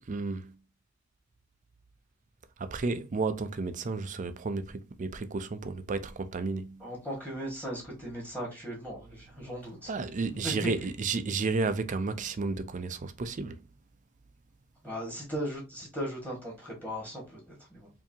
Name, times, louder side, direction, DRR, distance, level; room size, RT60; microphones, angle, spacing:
voice 1, 0.1-0.5 2.6-6.8 9.9-13.6, right 4 dB, 40° right, 0.4 m, -32 dB
voice 2, 6.8-9.9 10.3-10.7 14.8-17.9, equal, 10° left, 1.7 m, -37 dB
4.8 x 2.7 x 2.7 m
head